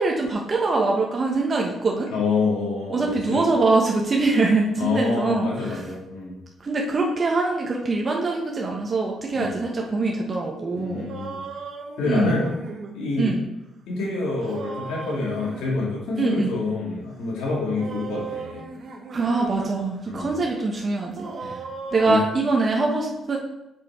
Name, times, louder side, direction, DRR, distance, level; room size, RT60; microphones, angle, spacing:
voice 1, 0.0-2.1 2.9-5.8 6.6-11.1 12.0-12.4 13.2-13.4 16.2-16.5 19.1-21.6 21.9-23.4, right 3 dB, 40° right, 0 dB, 1.2 m, -23 dB
voice 2, 2.1-3.5 4.8-6.3 9.3-9.5 10.7-11.4 12.0-12.5 12.9-13.4 13.9-18.6 20.1-20.3 21.4-21.6 22.0-22.2, left 3 dB, 90° left, -5 dB, 2.9 m, -27 dB
sound 1, 11.1-13.0 14.4-15.7 17.8-19.7 20.1-20.2 21.2-22.2, right 4 dB, 60° right, 1.2 m, -37 dB
6.6 x 6.0 x 4.4 m, 0.92 s
cardioid pair, 90°, 0 cm